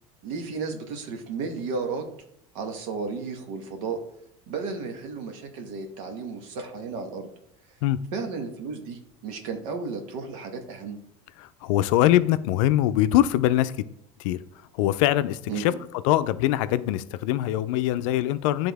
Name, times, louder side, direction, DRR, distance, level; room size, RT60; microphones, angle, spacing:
voice 1, 0.2-2.1 2.5-4.0 4.5-7.3 8.1-11.0 15.5-15.8, right 4 dB, 80° right, 5 dB, 1.2 m, -33 dB
voice 2, 11.4-13.8 14.2-14.4 14.7-15.7 16.0-18.7, left 14 dB, 80° left, 14 dB, 0.4 m, -23 dB
9.2 x 3.5 x 3.4 m, 0.71 s
supercardioid pair, 105°, 17 cm